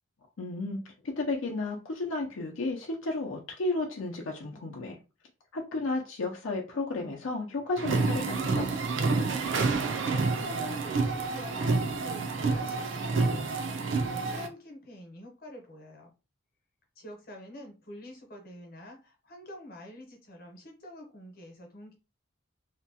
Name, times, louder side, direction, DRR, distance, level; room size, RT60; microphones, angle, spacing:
voice 1, 0.4-5.0 5.5-8.7, left 2 dB, 80° left, 0.5 m, -33 dB
sound 1, 7.8-14.5, right 3 dB, 70° right, 0.5 m, -28 dB
voice 2, 10.0-16.1 17.0-21.9, left 1 dB, 45° left, 0.9 m, -46 dB
2.8 x 2.2 x 2.7 m
head